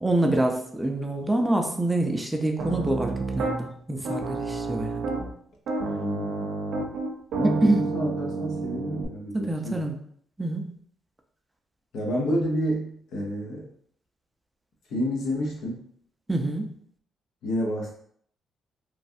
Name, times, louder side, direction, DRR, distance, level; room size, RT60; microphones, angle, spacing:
voice 1, 0.0-5.1 7.4-7.8 9.3-9.9 10.4-10.7 16.3-16.7, right 1 dB, 10° right, 3 dB, 0.5 m, -26 dB
Piano, 2.6-3.6 4.0-5.3 5.7-9.1, right 3 dB, 80° right, 0.6 m, -30 dB
voice 2, 5.8-6.6 7.3-9.8 11.9-13.7 14.9-15.8 17.4-17.9, equal, 80° left, -1 dB, 0.8 m, -29 dB
3.1 x 2.4 x 2.6 m, 0.63 s
cardioid pair, 90°, 0 cm